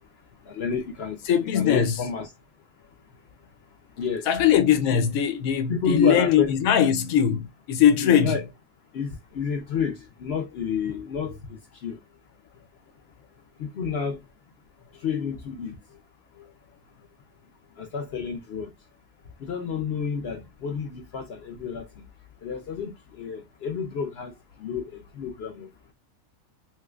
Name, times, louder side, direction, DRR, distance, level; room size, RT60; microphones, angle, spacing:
voice 1, 0.5-1.2 1.5-2.3 4.0-4.5 5.7-6.5 8.0-8.4 8.9-12.0 13.6-14.2 15.0-15.8 17.8-18.7 19.4-21.9 22.4-24.3 24.6-25.7, left 6 dB, 60° left, 0.8 m, -30 dB
voice 2, 1.3-2.0 4.3-8.4 16.4-16.5, left 9 dB, 85° left, 1.0 m, -21 dB
3.3 x 3.0 x 2.3 m
omnidirectional pair, 1.4 m